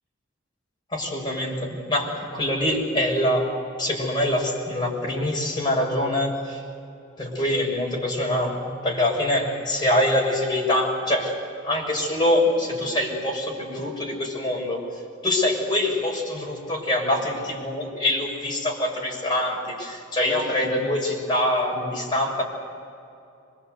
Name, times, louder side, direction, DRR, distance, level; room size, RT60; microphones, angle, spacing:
voice 1, 0.9-3.5 3.8-6.6 7.2-11.3 11.6-14.8 15.2-22.4, left 1 dB, 25° left, -2 dB, 6.8 m, -24 dB
26.5 x 23.0 x 8.1 m, 2.6 s
head